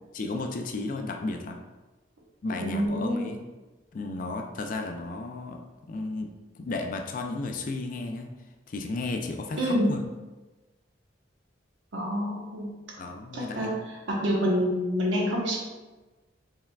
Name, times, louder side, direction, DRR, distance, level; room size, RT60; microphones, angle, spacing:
voice 1, 0.1-1.6 2.4-3.4 3.9-8.3 8.7-10.0 13.0-13.8, left 2 dB, 45° left, 4 dB, 0.3 m, -34 dB
voice 2, 2.5-3.3 9.6-10.0 11.9-12.8 13.3-15.6, equal, 90° right, -2 dB, 1.0 m, -27 dB
4.6 x 3.4 x 2.2 m, 1.2 s
head